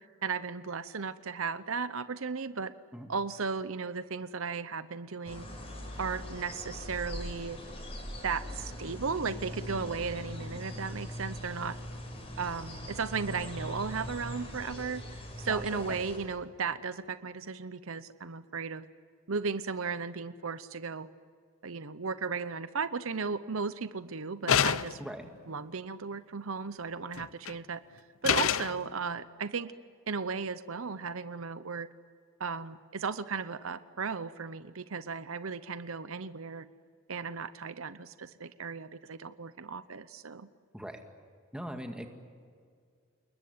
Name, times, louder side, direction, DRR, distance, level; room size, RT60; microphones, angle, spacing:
voice 1, 0.2-2.7 3.1-5.5 6.0-7.6 8.2-11.8 12.4-18.8 19.3-21.1 21.6-25.0 25.5-27.8 28.2-29.7 30.1-31.9 32.4-36.7 37.1-40.5, right 5 dB, 70° right, 13 dB, 0.8 m, -35 dB
sound 1, 5.2-16.2, equal, 25° left, 6.2 m, -41 dB
voice 2, 15.5-16.0 25.0-25.3 40.7-41.0 41.5-42.1, equal, 5° right, 4 dB, 2.1 m, -40 dB
sound 2, 24.5-25.1 27.2-27.5 28.2-28.8, left 8 dB, 70° left, 0.6 m, -27 dB
29.0 x 21.0 x 9.6 m, 2.1 s
head